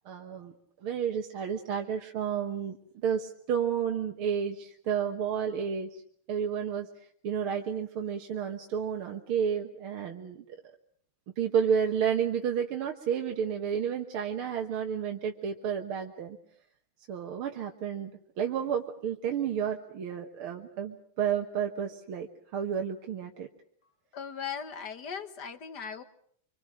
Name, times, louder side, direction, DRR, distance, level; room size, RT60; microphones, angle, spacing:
voice 1, 0.1-0.5 0.8-2.8 3.0-5.9 6.3-6.9 7.2-10.4 11.4-16.4 17.1-18.1 18.4-22.3 22.5-23.5, right 8 dB, 75° right, 3 dB, 2.2 m, -31 dB
voice 2, 24.1-26.0, left 7 dB, 55° left, 10 dB, 1.9 m, -38 dB
26.0 x 26.0 x 6.3 m, 0.64 s
omnidirectional pair, 2.4 m